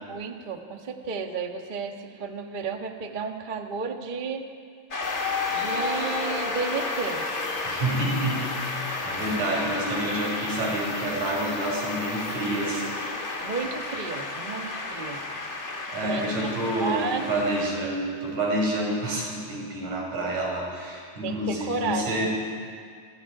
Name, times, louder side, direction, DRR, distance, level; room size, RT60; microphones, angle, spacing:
voice 1, 0.1-4.5 5.5-7.3 9.3-9.5 13.4-15.2 16.0-17.3 21.2-22.2, right 5 dB, 30° right, 3 dB, 0.9 m, -32 dB
Shout / Cheering / Applause, 4.9-17.7, left 3 dB, 25° left, 1.9 m, -32 dB
sound 1, 5.0-15.6 17.7-17.8 18.3-18.5, left 4 dB, 65° left, 0.8 m, -40 dB
voice 2, 7.7-8.5 9.0-12.9 15.9-22.3, right 1 dB, 75° right, -2 dB, 7.2 m, -28 dB
28.0 x 27.0 x 4.9 m, 2.1 s
omnidirectional pair, 3.5 m